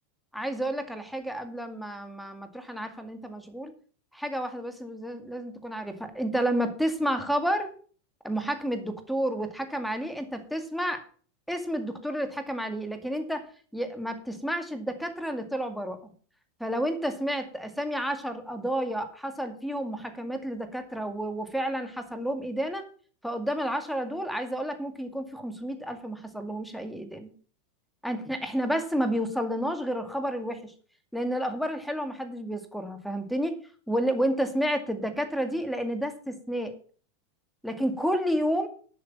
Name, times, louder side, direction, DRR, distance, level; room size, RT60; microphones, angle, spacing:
voice 1, 0.3-3.7 4.1-7.7 8.2-11.0 11.5-13.4 13.7-16.1 16.6-22.9 23.2-27.3 28.0-30.7 31.1-33.6 33.9-36.7 37.6-38.7, equal, ahead, 7 dB, 2.1 m, -30 dB
11.5 x 6.5 x 7.2 m, 0.43 s
supercardioid pair, 125°, 0 cm